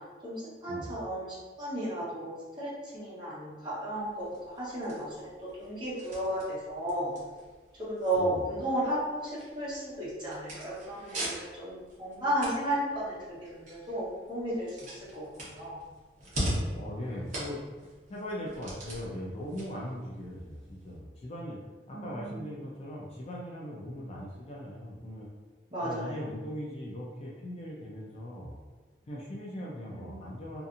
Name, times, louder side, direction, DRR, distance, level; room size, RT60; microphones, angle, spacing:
voice 1, 0.2-4.3 4.5-7.2 7.8-13.2 13.4-15.8 21.9-22.5 25.7-26.2 29.9-30.2, right 1 dB, 25° right, -10 dB, 1.1 m, -34 dB
sound 1, 4.0-21.0, right 1 dB, 45° right, 0.9 m, -42 dB
voice 2, 16.7-21.6 21.9-25.3 25.8-28.5 29.0-30.6, equal, 35° left, -4 dB, 0.4 m, -40 dB
2.7 x 2.4 x 2.5 m, 1.4 s
head